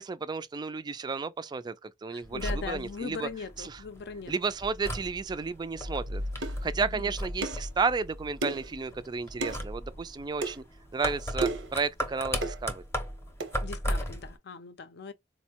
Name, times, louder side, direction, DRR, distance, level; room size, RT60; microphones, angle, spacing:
voice 1, 0.0-3.3 3.6-3.8 4.3-10.6 10.9-12.8, right 4 dB, 25° right, 0.3 m, -32 dB
voice 2, 2.1-4.3 6.8-7.1 13.6-15.1, left 5 dB, 60° left, 0.5 m, -39 dB
sound 1, 2.2-14.4, equal, 15° left, 0.7 m, -37 dB
sound 2, 5.7-9.1, left 1 dB, 65° right, 0.6 m, -39 dB
sound 3, 6.4-6.6 7.4-7.7 8.4-8.7 9.4-9.6 10.4-10.6 11.4-11.7 12.4-12.6 13.4-13.5, right 3 dB, 90° right, 0.8 m, -32 dB
4.2 x 2.1 x 2.8 m
head